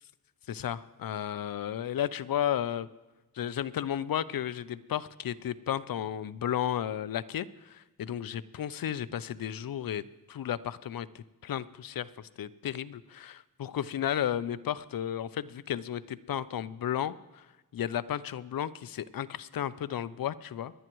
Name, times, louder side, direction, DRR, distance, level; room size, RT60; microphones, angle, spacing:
voice 1, 0.5-2.9 3.3-10.0 10.3-17.5 17.7-20.7, left 10 dB, 65° left, 16 dB, 0.6 m, -33 dB
26.0 x 11.0 x 3.1 m, 1.1 s
cardioid pair, 70°, 37 cm